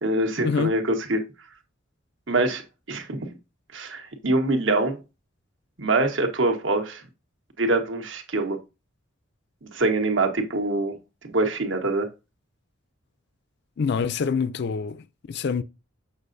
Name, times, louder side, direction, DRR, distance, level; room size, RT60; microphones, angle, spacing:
voice 1, 0.0-1.2 2.3-2.6 2.9-3.2 3.7-5.0 5.8-7.0 7.6-8.6 9.6-10.9 11.2-12.1, right 2 dB, 65° right, 1.3 m, -24 dB
voice 2, 13.8-15.0 15.3-15.6, left 5 dB, 55° left, 0.4 m, -25 dB
7.5 x 6.4 x 2.6 m
head